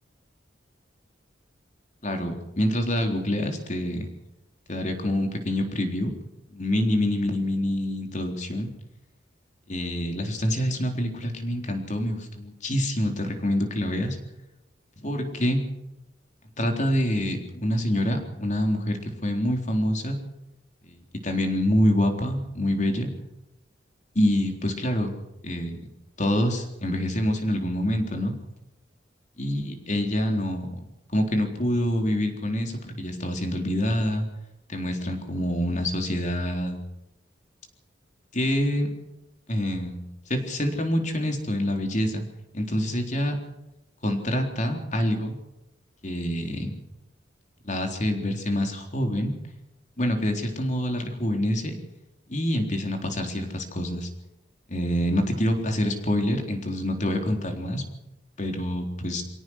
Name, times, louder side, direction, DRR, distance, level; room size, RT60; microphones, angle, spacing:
voice 1, 2.0-4.1 4.7-6.1 6.5-8.7 9.7-14.2 15.0-15.6 16.6-20.2 20.8-21.0 21.2-23.1 24.2-25.1 25.4-25.8 26.2-28.3 29.4-30.7 31.1-34.2 34.7-36.8 38.3-38.9 39.5-40.0 40.3-42.2 42.5-43.4 44.0-45.4 46.0-46.7 47.6-49.3 50.0-51.8 52.3-54.1 54.7-57.8 58.4-59.2, left 1 dB, 40° left, 4 dB, 3.9 m, -26 dB
24.5 x 17.5 x 6.4 m, 0.92 s
head